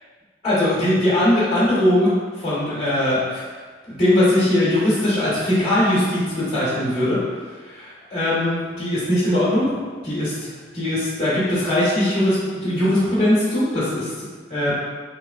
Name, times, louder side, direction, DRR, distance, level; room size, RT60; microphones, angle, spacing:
voice 1, 0.4-3.4 3.9-7.2 7.6-9.7 10.0-14.7, left 1 dB, 35° left, -12 dB, 1.1 m, -20 dB
3.5 x 3.0 x 2.4 m, 1.5 s
head